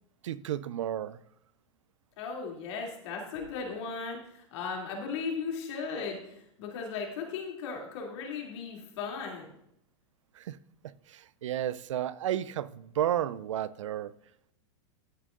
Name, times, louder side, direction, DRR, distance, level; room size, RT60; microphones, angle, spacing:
voice 1, 0.2-1.2 10.3-10.6 11.1-14.1, right 11 dB, 80° right, 0.4 m, -32 dB
voice 2, 2.2-9.5, left 5 dB, 65° left, 2.8 m, -37 dB
13.5 x 7.6 x 2.5 m
hypercardioid pair, 105°, 16 cm